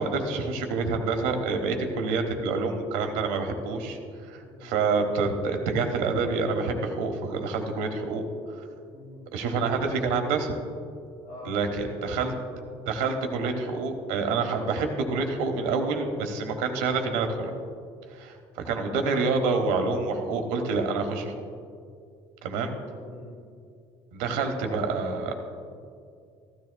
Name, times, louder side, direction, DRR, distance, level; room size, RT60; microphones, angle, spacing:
voice 1, 0.0-4.0 4.3-8.2 9.3-10.5 11.5-12.3 12.9-17.5 18.1-21.3 22.4-22.7 24.1-25.3, right 4 dB, 75° right, 5 dB, 1.2 m, -27 dB
voice 2, 4.4-4.7 8.9-9.2 11.2-12.6 18.8-19.2 23.0-23.3 24.5-24.6, left 2 dB, 85° left, -8 dB, 3.1 m, -45 dB
15.0 x 13.0 x 2.3 m, 2.4 s
hypercardioid pair, 70°, 13 cm